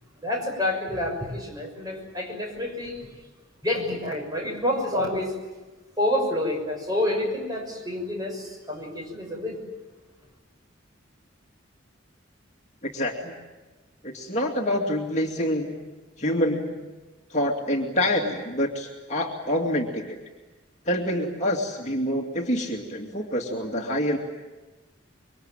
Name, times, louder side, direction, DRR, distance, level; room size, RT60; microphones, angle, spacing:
voice 1, 0.2-3.0 3.6-5.4 6.0-9.6, left 1 dB, 20° right, 1 dB, 6.4 m, -28 dB
voice 2, 12.8-13.3 14.0-15.8 16.2-16.8 17.3-20.2 20.9-24.2, left 1 dB, 35° left, 0 dB, 2.5 m, -26 dB
26.5 x 24.0 x 9.1 m, 1.2 s
head